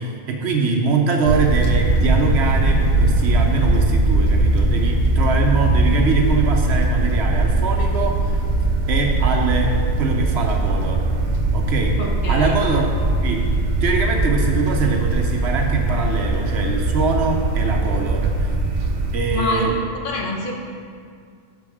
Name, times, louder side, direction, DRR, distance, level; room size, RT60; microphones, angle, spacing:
voice 1, 0.0-8.4 8.9-11.1 11.5-12.0 12.3-12.9 13.2-13.4 13.8-18.5 19.1-19.7, right 4 dB, 65° right, 2 dB, 1.0 m, -23 dB
sound 1, 1.2-19.2, right 2 dB, 50° right, 0.6 m, -20 dB
voice 2, 12.0-12.6 19.3-19.7 20.0-20.5, left 2 dB, 50° left, -1 dB, 1.0 m, -26 dB
6.8 x 5.1 x 4.8 m, 2.2 s
omnidirectional pair, 1.2 m